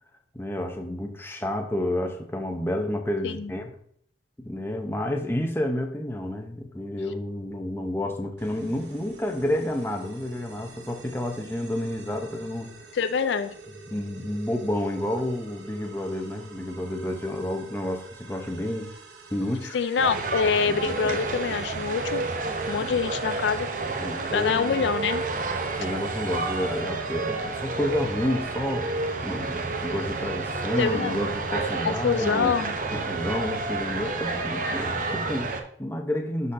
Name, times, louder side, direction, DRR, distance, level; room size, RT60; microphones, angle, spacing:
voice 1, 0.3-3.7 4.4-12.7 13.9-18.9 19.3-19.8 20.7-21.0 21.4-21.6 22.8-23.0 24.0-24.9 25.7-28.9 29.2-32.6 32.9-36.5, left 1 dB, 10° left, 4 dB, 0.7 m, -30 dB
sound 1, 8.4-26.8, right 3 dB, 70° right, 1.0 m, -47 dB
voice 2, 12.9-13.5 19.7-23.7 24.3-25.2 30.8-31.2 31.8-32.7, left 6 dB, 75° left, 11 dB, 0.4 m, -26 dB
sound 2, 20.0-35.6, right 3 dB, 45° right, 0.7 m, -30 dB
11.5 x 4.1 x 2.6 m, 0.64 s
head